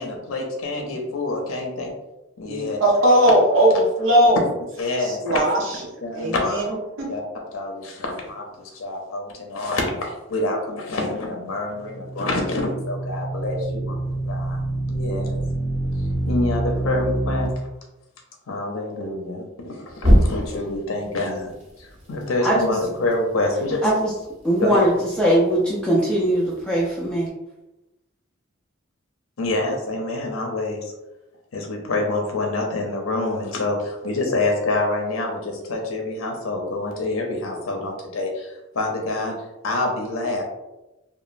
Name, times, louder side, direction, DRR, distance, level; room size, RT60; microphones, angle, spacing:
voice 1, 0.0-1.9 2.4-2.8 4.8-5.2 6.0-6.7 7.1-7.2 7.5-14.6 14.9-15.4 16.3-17.5 18.5-21.5 21.8-23.9 24.6-24.8 29.4-30.8 31.5-39.3 39.6-40.4, left 2 dB, 90° left, 1 dB, 0.5 m, -27 dB
voice 2, 2.5-4.5 5.0-5.8 6.1-7.1, right 1 dB, 70° right, -4 dB, 0.8 m, -19 dB
sound 1, 11.7-17.5 20.0-20.8, right 1 dB, 35° right, 1.0 m, -24 dB
voice 3, 22.4-22.7 23.8-24.1 24.4-24.9 25.2-27.3, right 1 dB, 5° left, -6 dB, 0.4 m, -20 dB
2.9 x 2.1 x 2.4 m, 0.99 s
head